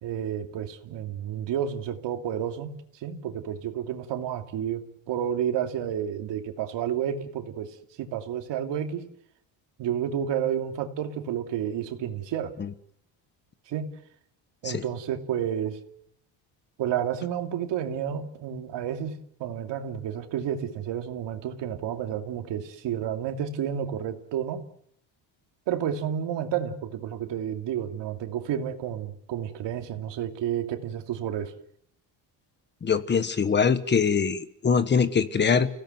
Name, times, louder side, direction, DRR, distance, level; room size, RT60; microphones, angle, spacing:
voice 1, 0.0-2.8 3.0-9.1 9.8-12.5 13.7-13.9 14.6-15.8 16.8-24.6 25.7-31.5, right 9 dB, 60° right, 4 dB, 2.9 m, -31 dB
voice 2, 32.8-35.7, left 6 dB, 20° left, 11 dB, 1.3 m, -23 dB
30.0 x 17.0 x 7.9 m, 0.72 s
cardioid pair, 165°, 48 cm